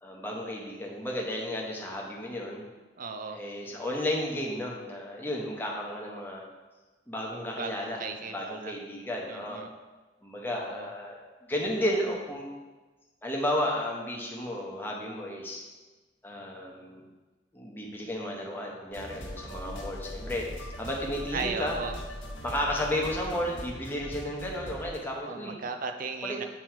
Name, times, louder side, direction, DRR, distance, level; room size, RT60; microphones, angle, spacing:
voice 1, 0.0-2.6 3.3-6.4 7.1-8.0 8.3-9.6 10.2-12.5 13.2-15.6 16.2-17.0 17.5-21.8 22.4-25.6 26.2-26.4, left 1 dB, 10° left, -2 dB, 0.9 m, -33 dB
voice 2, 3.0-3.4 7.6-8.7 9.3-9.7 10.6-10.9 21.3-21.9 25.3-26.4, right 4 dB, 45° right, 6 dB, 0.4 m, -36 dB
sound 1, 18.9-25.0, equal, 85° left, 1.1 m, -40 dB
7.5 x 3.0 x 4.5 m, 1.2 s
head